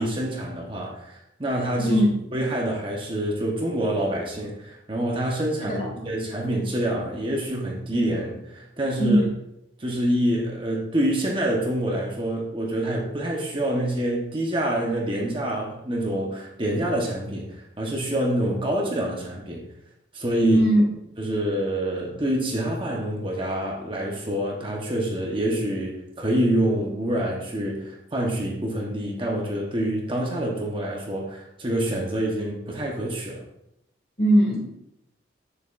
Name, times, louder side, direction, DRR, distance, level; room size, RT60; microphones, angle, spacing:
voice 1, 0.0-2.0 2.3-9.2 9.8-19.6 20.1-20.6 21.2-33.4, right 1 dB, 25° right, -2 dB, 1.1 m, -26 dB
voice 2, 1.8-2.1 5.7-5.9 9.0-9.3 20.4-20.8 34.2-34.6, equal, 35° left, -1 dB, 2.3 m, -20 dB
9.0 x 6.9 x 2.6 m, 0.83 s
head